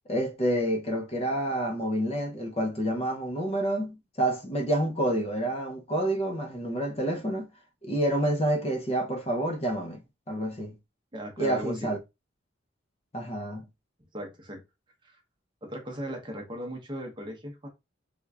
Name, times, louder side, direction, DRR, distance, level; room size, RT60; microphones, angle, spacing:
voice 1, 0.1-7.5 7.8-10.0 10.3-10.7 11.4-12.0 13.1-13.7, right 1 dB, 30° left, 0.6 m, -28 dB
voice 2, 11.1-11.9 14.1-14.6 15.0-15.2 15.6-17.7, equal, 25° right, 0.7 m, -37 dB
3.5 x 2.9 x 2.3 m
head